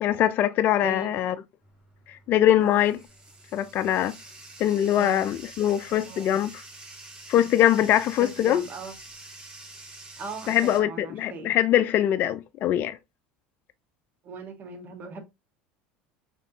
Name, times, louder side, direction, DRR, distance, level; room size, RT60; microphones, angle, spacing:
voice 1, 0.0-1.3 2.1-3.0 3.5-4.1 4.6-6.6 7.3-8.6 10.5-13.0, left 11 dB, 50° left, 0.4 m, -22 dB
voice 2, 0.8-1.1 2.6-2.8 4.6-4.7 4.9-5.2 5.9-6.4 7.3-7.5 8.2-8.9 10.2-11.5 14.2-15.2, right 4 dB, 40° right, 1.3 m, -39 dB
Bathtub (filling or washing), 1.6-10.8, right 2 dB, 15° right, 2.0 m, -47 dB
5.1 x 3.4 x 2.7 m
supercardioid pair, 100°, 5 cm